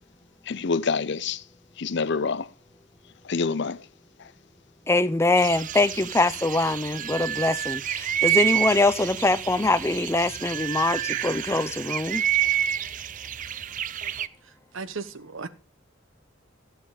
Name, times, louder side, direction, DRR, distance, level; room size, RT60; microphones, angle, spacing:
voice 1, 0.5-1.4 1.8-2.5 3.2-3.9 4.2-4.3, left 4 dB, 60° left, 0.6 m, -27 dB
voice 2, 4.9-12.2, left 2 dB, 15° left, 0.5 m, -23 dB
sound 1, 5.4-14.3, right 11 dB, 40° right, 0.5 m, -28 dB
voice 3, 14.7-15.5, right 4 dB, 80° right, 1.0 m, -35 dB
14.0 x 7.8 x 4.9 m
head